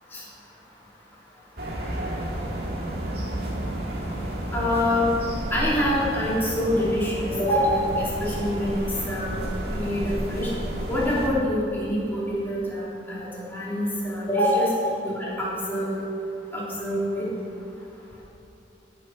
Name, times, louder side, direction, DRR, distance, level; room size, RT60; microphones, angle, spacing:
sound 1, 1.6-11.3, right 1 dB, 55° right, 1.9 m, -31 dB
voice 1, 4.5-5.1 5.5-9.4 9.7-10.5 10.9-14.7 15.0-16.0 16.5-17.3, left 1 dB, 10° left, -8 dB, 3.4 m, -25 dB
15.5 x 7.8 x 5.9 m, 2.8 s
head